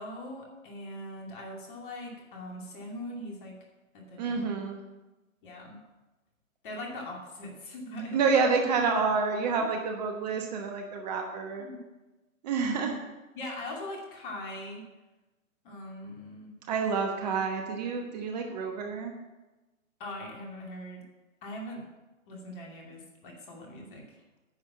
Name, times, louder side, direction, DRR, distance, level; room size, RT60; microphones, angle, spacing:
voice 1, 0.0-3.6 3.9-4.5 5.4-5.8 6.6-8.2 11.6-11.8 13.3-14.8 15.6-16.6 20.0-21.0 21.4-21.9 22.3-24.2, left 1 dB, 40° left, 0 dB, 2.7 m, -41 dB
voice 2, 4.2-4.8 8.1-11.7 12.4-13.0 16.7-19.1, right 5 dB, 30° right, 3 dB, 1.1 m, -28 dB
9.8 x 6.2 x 7.2 m, 1.1 s
figure-of-eight pair, 130°, 41 cm